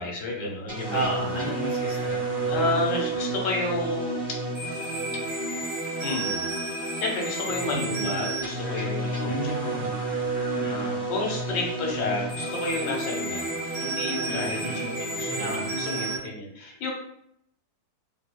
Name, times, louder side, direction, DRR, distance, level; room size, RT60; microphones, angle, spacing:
voice 1, 0.0-1.4 2.5-4.1 6.0-6.7 7.0-9.9 10.6-16.9, left 3 dB, 75° left, 0 dB, 1.4 m, -31 dB
sound 1, 0.7-16.2, right 2 dB, 20° right, 1.0 m, -30 dB
voice 2, 0.9-2.5 7.7-7.8 9.3-9.9 10.6-10.9 14.3-14.9 15.4-15.6, right 2 dB, 65° right, -5 dB, 0.5 m, -32 dB
3.6 x 2.8 x 2.2 m, 0.73 s
omnidirectional pair, 1.9 m